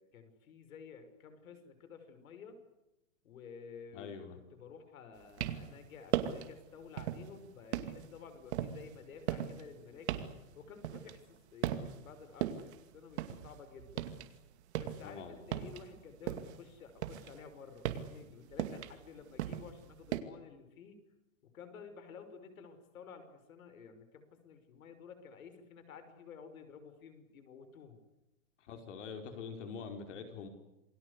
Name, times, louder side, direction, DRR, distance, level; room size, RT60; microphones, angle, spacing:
voice 1, 0.0-2.6 3.2-10.3 10.5-14.1 14.8-21.1 21.4-28.0, left 6 dB, 80° left, 10 dB, 5.8 m, -52 dB
voice 2, 3.9-4.4 15.0-15.4 28.6-30.5, left 5 dB, 60° left, 6 dB, 4.9 m, -44 dB
sound 1, 5.2-5.8 6.1-6.5 7.0-7.3 7.7-11.4 11.6-12.1 12.4-14.3 14.6-16.6 17.0-20.2, right 11 dB, 50° right, 2.4 m, -38 dB
28.5 x 21.5 x 8.3 m, 0.95 s
supercardioid pair, 170°, 41 cm